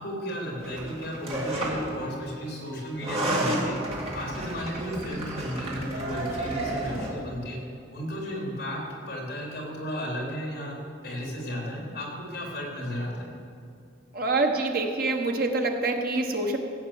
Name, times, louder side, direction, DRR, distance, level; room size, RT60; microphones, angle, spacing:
voice 1, 0.0-3.8 4.1-7.6 7.9-8.8 9.1-10.8 11.0-13.3, equal, 55° left, -2 dB, 4.1 m, -34 dB
sound 1, 0.6-2.0 2.9-7.1, right 1 dB, 35° right, 2.4 m, -31 dB
voice 2, 14.1-16.6, right 2 dB, 55° right, 3 dB, 1.4 m, -26 dB
16.5 x 8.5 x 7.4 m, 2.4 s
head